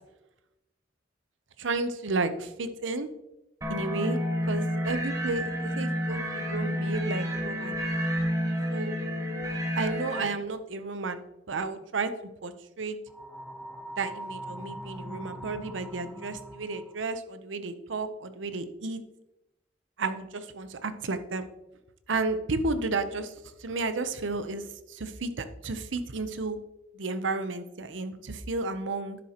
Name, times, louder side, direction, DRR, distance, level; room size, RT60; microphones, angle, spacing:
voice 1, 1.6-3.1 3.7-4.2 4.5-7.8 8.7-9.0 9.7-12.1 12.4-13.0 14.0-19.0 20.0-21.5 22.1-26.6 26.9-29.2, right 3 dB, 90° right, 11 dB, 0.7 m, -32 dB
sound 1, 3.6-10.3, equal, 20° right, 1.2 m, -30 dB
sound 2, 13.1-17.1, right 1 dB, ahead, 0.6 m, -42 dB
10.5 x 7.3 x 2.9 m, 0.94 s
head